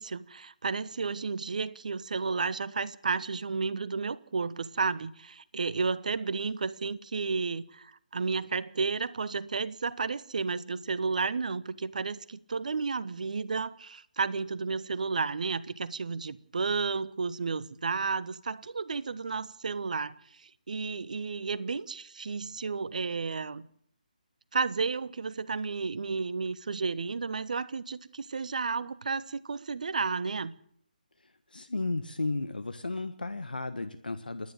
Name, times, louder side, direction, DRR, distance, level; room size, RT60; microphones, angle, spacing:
voice 1, 0.0-23.6 24.5-30.5, right 4 dB, 60° right, 1.1 m, -32 dB
voice 2, 31.5-34.5, left 2 dB, 80° left, 1.5 m, -34 dB
28.5 x 10.5 x 9.0 m
figure-of-eight pair, 150°, 5 cm